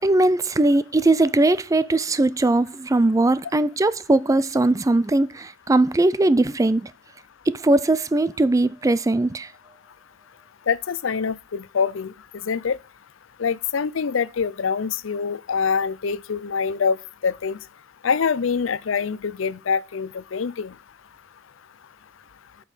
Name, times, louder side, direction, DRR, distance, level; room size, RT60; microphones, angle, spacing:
voice 1, 0.0-6.9 7.5-9.5, right 2 dB, 15° right, 0.4 m, -20 dB
voice 2, 10.7-12.1 12.4-12.8 13.4-17.0 17.2-17.6 18.0-20.7, left 6 dB, 75° left, 0.5 m, -25 dB
8.1 x 6.2 x 5.5 m
head